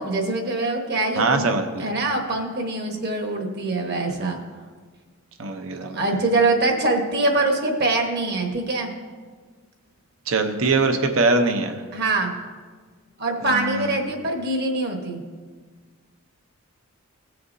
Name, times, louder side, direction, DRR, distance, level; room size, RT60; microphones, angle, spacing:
voice 1, 0.0-1.4 1.8-4.4 5.9-8.9 11.9-12.3 13.2-15.2, right 2 dB, 45° right, 3 dB, 1.2 m, -23 dB
voice 2, 1.2-1.9 4.2-4.3 5.4-6.2 10.3-11.8 13.4-13.9, right 3 dB, 65° right, 6 dB, 0.7 m, -22 dB
17.0 x 6.6 x 2.7 m, 1.5 s
head